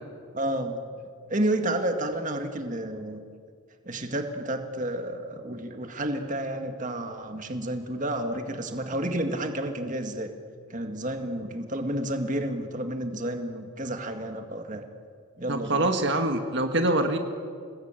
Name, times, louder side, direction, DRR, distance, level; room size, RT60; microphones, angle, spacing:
voice 1, 0.3-0.8 1.3-3.2 3.9-10.3 10.7-14.8 15.4-15.9, right 1 dB, 35° right, 5 dB, 1.9 m, -30 dB
voice 2, 15.5-17.2, right 1 dB, 55° right, 5 dB, 1.8 m, -24 dB
29.0 x 20.0 x 9.1 m, 2.2 s
head